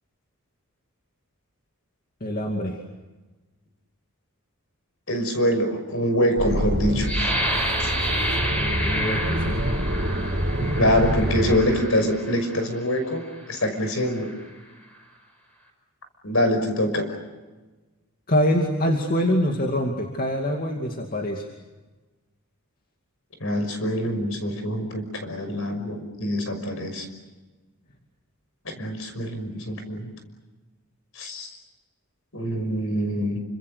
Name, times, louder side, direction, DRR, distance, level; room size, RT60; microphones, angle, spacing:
voice 1, 2.2-2.8 8.1-9.6 18.3-21.5, equal, 40° left, 2 dB, 2.5 m, -25 dB
voice 2, 5.1-7.3 10.8-14.3 16.2-17.1 23.4-27.1 28.6-30.1 31.2-31.5 32.3-33.4, equal, 60° left, 7 dB, 5.8 m, -25 dB
sound 1, 6.4-11.6, equal, 45° right, 2.5 m, -26 dB
sound 2, 7.0-12.7 13.3-13.5 14.0-14.4, equal, 5° left, 5.4 m, -29 dB
29.5 x 26.0 x 6.7 m, 1.2 s
head